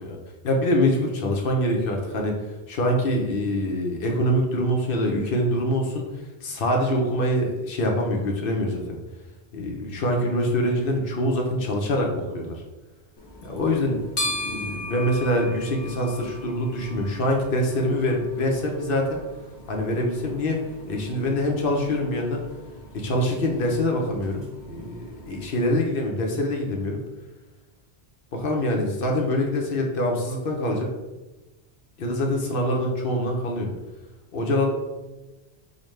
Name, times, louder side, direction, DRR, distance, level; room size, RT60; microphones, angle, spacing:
voice 1, 0.4-2.3 2.7-6.0 6.4-9.0 9.5-12.6 13.4-19.2 19.7-20.6 20.9-22.4 22.9-27.0 28.3-30.9 32.0-33.7 34.3-34.7, left 1 dB, 65° left, 1 dB, 0.7 m, -24 dB
sound 1, 13.2-25.7, left 1 dB, 30° left, 0.6 m, -39 dB
5.1 x 2.1 x 3.1 m, 1.1 s
omnidirectional pair, 1.1 m